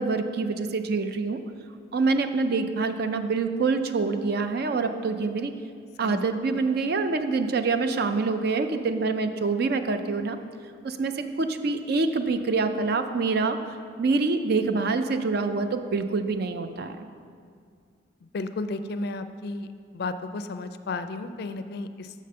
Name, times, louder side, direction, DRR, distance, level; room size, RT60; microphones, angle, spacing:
voice 1, 0.0-1.4 1.9-5.5 6.0-10.4 10.8-13.6 14.0-17.0, right 4 dB, 55° right, 9 dB, 0.5 m, -26 dB
voice 2, 18.3-19.7 19.9-22.1, left 3 dB, 60° left, 10 dB, 0.4 m, -33 dB
6.4 x 5.1 x 6.6 m, 2.2 s
head